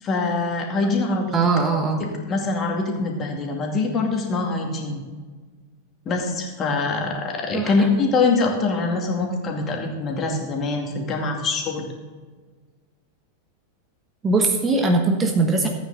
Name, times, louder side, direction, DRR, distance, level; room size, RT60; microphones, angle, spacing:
voice 1, 0.0-1.4 2.0-5.0 6.1-11.9, left 3 dB, 30° left, 1 dB, 2.3 m, -24 dB
voice 2, 1.3-2.0 7.5-7.9 14.2-15.7, right 3 dB, 20° right, 3 dB, 1.3 m, -20 dB
14.5 x 9.0 x 3.9 m, 1.4 s
figure-of-eight pair, 90°, 0 cm